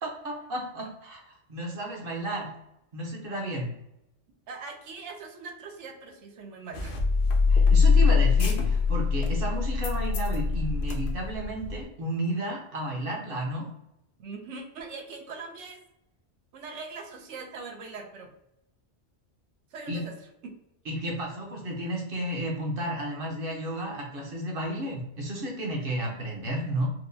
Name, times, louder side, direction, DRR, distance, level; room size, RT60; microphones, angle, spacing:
voice 1, 0.0-2.5 2.9-3.7 7.5-13.7 19.9-20.0 20.8-26.9, right 1 dB, 50° right, -1 dB, 1.1 m, -32 dB
voice 2, 4.5-7.0 14.2-15.8 16.5-18.3 19.7-20.1 20.4-20.5, right 4 dB, 75° right, 3 dB, 0.9 m, -41 dB
sound 1, 6.7-11.8, left 5 dB, 70° left, 0.9 m, -23 dB
4.5 x 2.1 x 2.6 m, 0.82 s
omnidirectional pair, 1.2 m